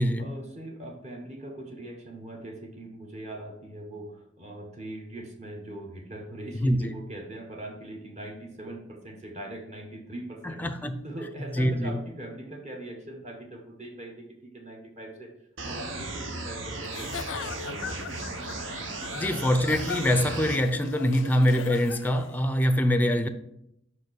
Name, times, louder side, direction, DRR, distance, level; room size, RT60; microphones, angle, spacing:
voice 1, 0.2-10.6 11.0-18.2, right 1 dB, 35° right, 1.3 m, -41 dB
voice 2, 6.6-6.9 10.4-11.0 11.5-12.0 19.1-23.3, equal, 10° left, 0.4 m, -24 dB
sound 1, 15.6-20.6, right 2 dB, 75° right, 0.9 m, -36 dB
Giggle / Chuckle chortle, 16.8-22.3, left 6 dB, 70° left, 0.4 m, -39 dB
5.6 x 4.8 x 6.2 m
head